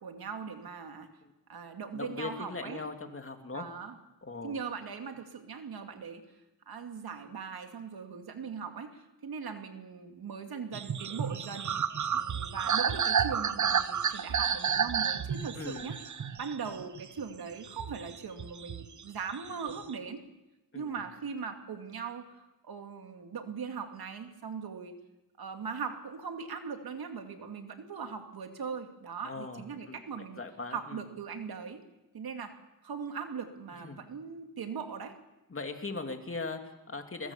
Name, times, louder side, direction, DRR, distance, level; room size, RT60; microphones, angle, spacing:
voice 1, 0.0-1.1 1.5-2.9 3.5-4.0 4.4-6.2 6.7-11.7 12.1-15.9 16.4-20.2 20.7-24.9 25.4-30.4 30.7-31.8 32.1-32.5 32.8-35.1, right 6 dB, 80° right, 5 dB, 2.5 m, -40 dB
voice 2, 1.9-3.7 4.2-4.5 15.6-15.9 20.7-20.9 29.2-31.0 33.8-34.0 35.5-37.3, left 3 dB, 35° left, 5 dB, 2.9 m, -40 dB
sound 1, 10.7-17.2 17.6-19.0 19.3-19.9, right 7 dB, 55° right, 1.0 m, -31 dB
22.0 x 22.0 x 7.2 m, 1.0 s
cardioid pair, 80°, 36 cm